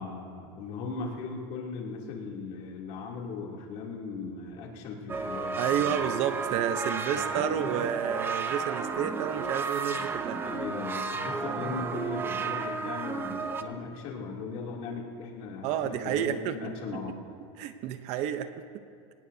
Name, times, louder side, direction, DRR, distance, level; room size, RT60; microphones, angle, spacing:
voice 1, 0.0-6.1 7.1-7.6 10.4-17.1, left 4 dB, 50° left, -2 dB, 3.0 m, -38 dB
sound 1, 5.1-13.6, right 4 dB, 15° right, 0.7 m, -33 dB
voice 2, 5.6-10.4 15.6-16.6 16.9-17.0 17.6-18.6, right 9 dB, 45° right, 10 dB, 0.9 m, -30 dB
25.5 x 19.0 x 2.8 m, 2.4 s
supercardioid pair, 155°, 15 cm